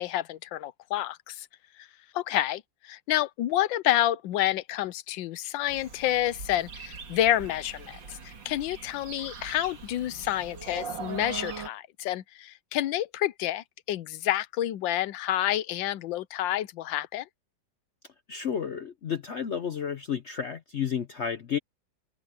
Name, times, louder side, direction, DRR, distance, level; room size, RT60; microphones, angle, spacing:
voice 1, 0.0-1.5 1.8-1.9 2.1-17.3, left 13 dB, 85° left, 1.4 m, -29 dB
sound 1, 5.7-11.7, right 5 dB, 75° right, 2.8 m, -41 dB
voice 2, 18.3-21.6, left 7 dB, 60° left, 0.7 m, -31 dB
omnidirectional pair, 2.0 m